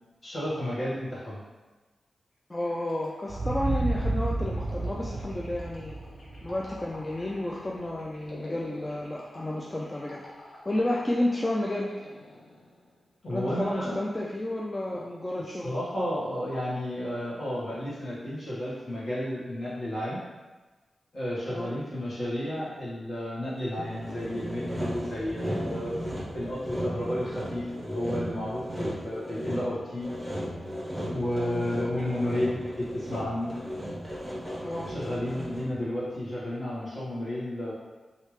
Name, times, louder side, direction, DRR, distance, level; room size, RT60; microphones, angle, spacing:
voice 1, 0.2-1.4 13.2-14.0 14.9-15.0 15.5-20.2 21.1-26.0 26.3-30.1 31.1-33.5 34.9-37.7, left 1 dB, 55° left, -8 dB, 1.4 m, -32 dB
voice 2, 2.5-6.0 6.4-10.2 10.6-11.9 13.3-15.8 21.5-21.7 31.4-31.6 34.6-34.8, left 1 dB, 25° left, -3 dB, 0.4 m, -31 dB
sound 1, 2.6-13.0, left 1 dB, 80° left, 0.8 m, -49 dB
sound 2, 3.3-7.9, right 2 dB, 60° right, 0.5 m, -32 dB
Sawing, 23.8-35.8, equal, 5° right, 0.9 m, -36 dB
3.2 x 2.8 x 3.1 m, 1.2 s
cardioid pair, 75°, 0 cm